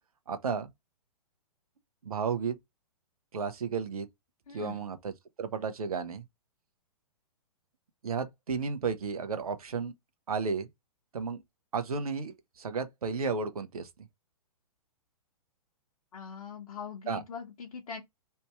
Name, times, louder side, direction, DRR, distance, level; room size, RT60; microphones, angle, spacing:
voice 1, 0.3-0.7 2.0-2.6 3.3-4.1 4.5-6.2 8.0-9.9 10.3-10.7 11.1-11.4 11.7-14.1 17.1-17.2, right 5 dB, 70° right, 1.1 m, -33 dB
voice 2, 4.5-4.9 16.1-18.0, left 6 dB, 60° left, 1.2 m, -42 dB
3.4 x 2.8 x 4.6 m
figure-of-eight pair, 120°, 20 cm